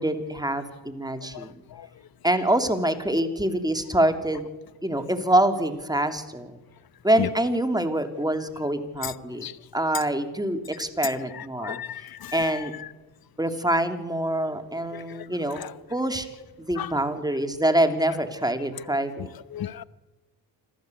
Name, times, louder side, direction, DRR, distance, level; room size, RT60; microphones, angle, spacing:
voice 1, 0.0-1.6 2.2-4.4 4.8-6.6 7.0-9.5 9.7-11.8 12.3-12.7 13.4-15.6 15.9-16.3 16.6-19.3, right 1 dB, 10° right, 7 dB, 3.4 m, -25 dB
voice 2, 11.6-12.4 14.9-15.2 15.6-15.7 16.8-16.9 19.5-19.8, left 10 dB, 50° left, 17 dB, 1.1 m, -33 dB
26.5 x 14.5 x 8.3 m, 1.2 s
hypercardioid pair, 45°, 48 cm